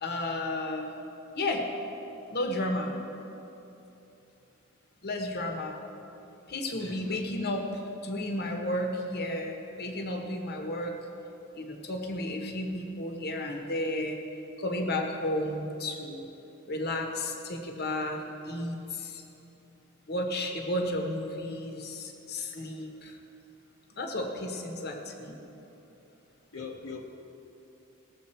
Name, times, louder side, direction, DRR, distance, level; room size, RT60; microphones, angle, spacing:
voice 1, 0.0-0.9 1.3-1.6 2.3-3.0 5.0-5.8 6.5-11.0 11.5-14.2 14.6-16.3 16.7-19.2 20.1-23.2 23.9-25.3, left 1 dB, 45° left, 3 dB, 1.2 m, -33 dB
voice 2, 6.8-7.3 26.5-27.1, left 4 dB, 70° left, 0 dB, 1.0 m, -41 dB
19.0 x 7.2 x 4.4 m, 2.9 s
head